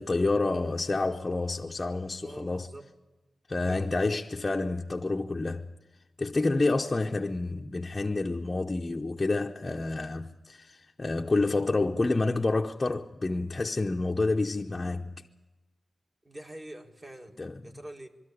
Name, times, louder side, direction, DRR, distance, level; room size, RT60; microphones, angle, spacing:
voice 1, 0.0-2.7 3.5-5.7 6.2-15.2 17.4-17.5, left 2 dB, 25° left, 0.6 m, -28 dB
voice 2, 2.2-2.9 3.7-4.0 16.2-18.1, right 1 dB, 25° right, 1.6 m, -45 dB
22.0 x 13.0 x 9.7 m
wide cardioid pair, 120°, 0 cm